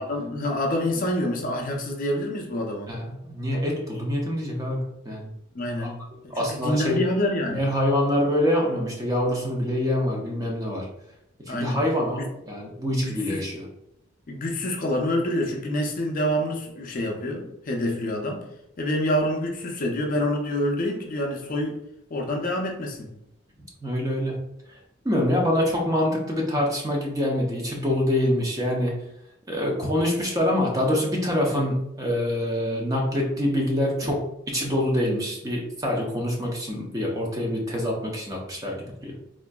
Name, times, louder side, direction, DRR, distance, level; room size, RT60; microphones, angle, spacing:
voice 1, 0.0-2.9 5.5-7.6 11.5-11.8 12.2-12.3 13.0-13.5 14.3-18.4 18.8-21.8 22.1-23.1, left 1 dB, 40° left, 1 dB, 0.4 m, -27 dB
voice 2, 2.9-5.3 5.8-5.9 6.3-7.0 7.5-10.9 11.4-13.7 23.8-24.4 25.0-28.9 29.5-39.1, left 1 dB, 15° right, -1 dB, 0.6 m, -25 dB
3.6 x 2.5 x 2.2 m, 0.81 s
head